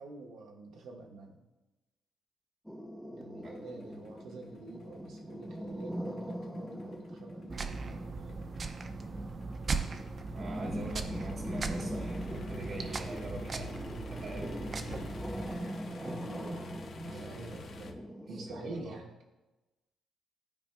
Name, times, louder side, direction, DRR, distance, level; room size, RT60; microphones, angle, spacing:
voice 1, 0.0-1.4 3.1-8.5 14.7-19.1, right 2 dB, 80° right, -1 dB, 1.1 m, -47 dB
sound 1, 2.7-18.7, equal, ahead, 0.8 m, -42 dB
sound 2, 3.4-17.9, left 5 dB, 60° left, 0.7 m, -50 dB
sound 3, 7.5-15.6, right 4 dB, 40° right, 0.5 m, -39 dB
voice 2, 10.3-14.5 17.0-17.4 18.3-19.0, right 1 dB, 60° right, -5 dB, 1.2 m, -44 dB
12.5 x 4.3 x 2.2 m, 1.1 s
cardioid pair, 90°, 0 cm